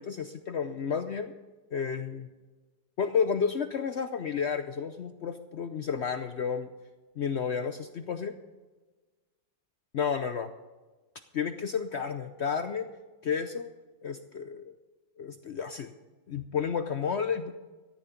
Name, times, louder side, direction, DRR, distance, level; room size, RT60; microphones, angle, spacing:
voice 1, 0.0-1.3 1.7-2.3 3.0-6.7 7.2-8.4 9.9-10.5 11.3-12.9 13.2-13.7 14.0-14.7 15.2-15.9 16.3-17.5, left 6 dB, 75° left, 9 dB, 0.6 m, -31 dB
14.0 x 10.5 x 5.2 m, 1.2 s
omnidirectional pair, 2.0 m